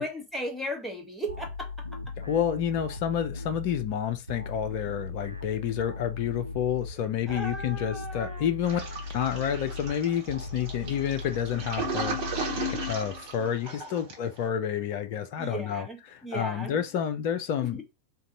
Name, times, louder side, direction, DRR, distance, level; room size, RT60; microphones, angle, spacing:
voice 1, 0.0-1.7 7.3-8.5 15.4-16.8 17.7-17.8, right 1 dB, 5° right, 1.0 m, -36 dB
sound 1, 1.3-13.5, left 4 dB, 85° right, 0.5 m, -38 dB
voice 2, 2.2-8.8 9.1-12.2 12.7-17.8, left 9 dB, 45° left, 0.4 m, -29 dB
Toilet flush, 8.6-14.4, right 2 dB, 45° right, 1.1 m, -35 dB
2.6 x 2.2 x 3.8 m
figure-of-eight pair, 90°, 0 cm